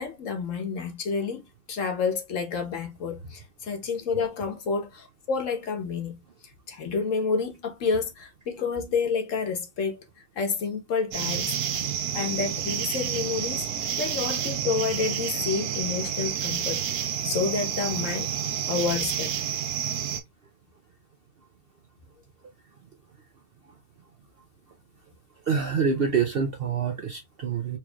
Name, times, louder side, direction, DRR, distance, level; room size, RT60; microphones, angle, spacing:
voice 1, 0.0-6.2 6.7-10.0 10.4-13.7 14.0-16.8 17.2-18.3 18.7-19.3, left 5 dB, 60° left, 1.3 m, -29 dB
sound 1, 11.1-20.2, right 9 dB, 80° right, 1.1 m, -29 dB
voice 2, 25.5-27.8, right 6 dB, 60° right, 0.6 m, -26 dB
4.4 x 3.0 x 2.2 m
omnidirectional pair, 1.5 m